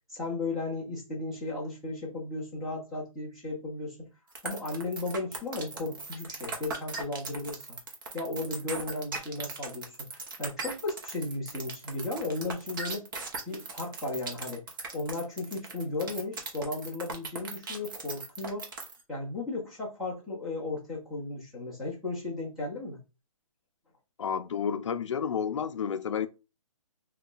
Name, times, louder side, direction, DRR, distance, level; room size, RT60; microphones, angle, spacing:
voice 1, 0.1-4.1 4.4-7.8 8.1-13.0 13.5-14.6 14.9-23.0, left 2 dB, ahead, 0.5 m, -35 dB
sound 1, 4.3-19.0, right 4 dB, 35° right, 0.7 m, -38 dB
voice 2, 24.2-26.3, left 7 dB, 55° left, 0.5 m, -30 dB
2.8 x 2.3 x 3.9 m
hypercardioid pair, 170°, 18 cm